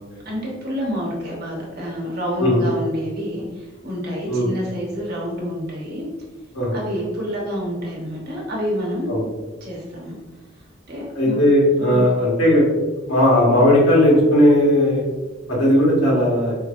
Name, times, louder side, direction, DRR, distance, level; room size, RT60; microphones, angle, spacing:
voice 1, 0.2-6.0 6.7-9.1 9.6-10.1 10.9-11.4 11.8-12.1, equal, 50° right, -3 dB, 1.0 m, -28 dB
voice 2, 11.1-12.6 13.1-15.0 15.5-16.5, left 1 dB, 85° left, -5 dB, 1.4 m, -16 dB
4.4 x 2.7 x 2.5 m, 1.2 s
head